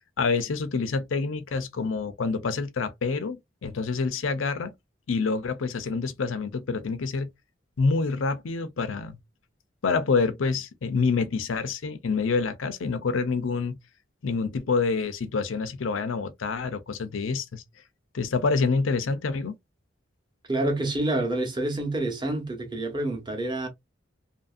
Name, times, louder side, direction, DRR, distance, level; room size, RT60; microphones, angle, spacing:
voice 1, 0.2-4.7 5.1-7.3 7.8-9.2 9.8-13.8 14.2-17.6 18.1-19.6, left 4 dB, 85° left, 0.5 m, -27 dB
voice 2, 20.5-23.7, right 1 dB, 25° right, 0.9 m, -28 dB
2.8 x 2.6 x 2.4 m
head